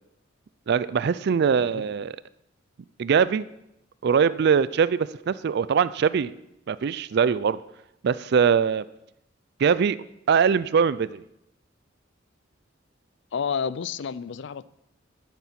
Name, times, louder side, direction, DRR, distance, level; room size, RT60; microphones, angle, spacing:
voice 1, 0.7-2.1 3.0-3.5 4.0-6.3 6.7-7.6 8.0-8.8 9.6-10.0 10.3-11.2, right 6 dB, 55° right, 17 dB, 0.4 m, -22 dB
voice 2, 13.3-14.7, left 6 dB, 65° left, 18 dB, 0.4 m, -30 dB
12.0 x 7.2 x 5.8 m, 0.83 s
head